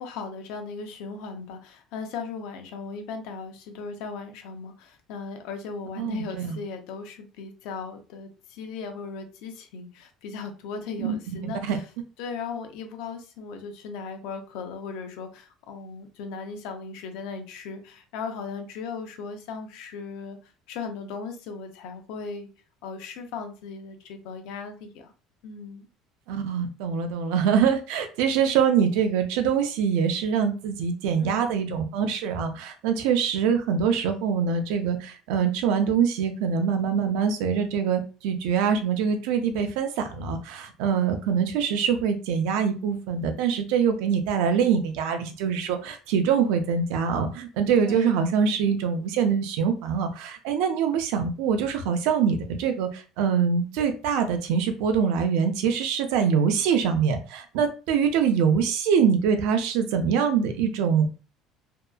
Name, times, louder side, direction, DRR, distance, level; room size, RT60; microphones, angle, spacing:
voice 1, 0.0-11.8 12.2-22.5 22.8-25.1 25.4-25.9 31.2-31.5 47.8-48.2, left 5 dB, 75° left, 6 dB, 0.5 m, -37 dB
voice 2, 6.0-6.6 11.0-11.1 11.4-11.8 26.3-61.1, right 7 dB, 85° right, 6 dB, 0.5 m, -24 dB
2.7 x 2.3 x 2.3 m, 0.35 s
cardioid pair, 150°, 0 cm